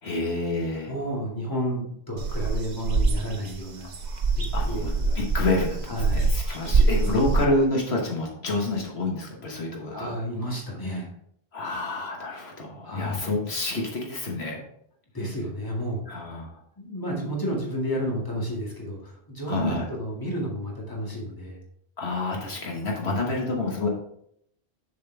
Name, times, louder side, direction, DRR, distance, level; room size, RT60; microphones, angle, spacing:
voice 1, 0.0-0.9 4.5-10.1 11.5-14.6 16.1-16.5 19.5-19.8 22.0-23.9, left 2 dB, 70° left, 0 dB, 1.5 m, -28 dB
voice 2, 0.9-3.9 4.4-5.2 5.9-6.2 9.9-11.1 12.8-13.2 15.1-16.0 16.8-21.6 23.0-23.1, equal, 20° left, -2 dB, 1.9 m, -31 dB
sound 1, 2.2-7.5, right 3 dB, 45° right, 0.8 m, -24 dB
6.9 x 6.5 x 3.4 m, 0.70 s
omnidirectional pair, 1.1 m